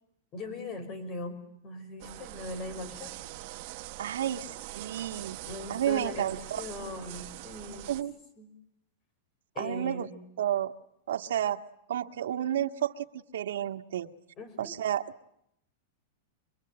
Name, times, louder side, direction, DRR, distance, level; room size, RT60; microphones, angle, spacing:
voice 1, 0.3-3.2 5.5-7.9 8.4-8.5 9.6-10.1 14.4-14.7, left 2 dB, 25° left, 9 dB, 5.4 m, -40 dB
sound 1, 2.0-8.0, right 17 dB, 40° right, 1.3 m, -43 dB
voice 2, 4.0-5.4 5.7-6.6 7.9-8.1 9.6-10.1 10.4-10.7 11.1-11.6 11.9-13.1 13.3-14.1 14.6-15.0, right 10 dB, 90° right, 6 dB, 1.6 m, -31 dB
25.0 x 24.5 x 8.8 m, 0.76 s
supercardioid pair, 175°, 0 cm